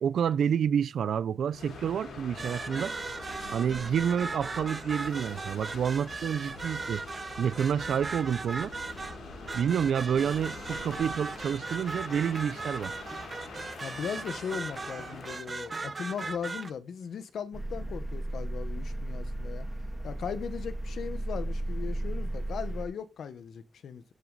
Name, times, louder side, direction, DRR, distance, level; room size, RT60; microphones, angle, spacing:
voice 1, 0.0-2.9 3.5-7.0 7.4-8.7 9.5-12.9, right 8 dB, 65° right, 0.5 m, -29 dB
sound 1, 1.5-16.6, left 3 dB, 90° left, 6.7 m, -45 dB
sound 2, 2.4-16.7, right 3 dB, 25° right, 0.8 m, -38 dB
voice 2, 13.8-19.7 20.0-24.0, left 7 dB, 70° left, 1.2 m, -38 dB
sound 3, 17.5-22.9, right 1 dB, ahead, 2.5 m, -34 dB
14.0 x 6.1 x 4.0 m
wide cardioid pair, 175°, 0 cm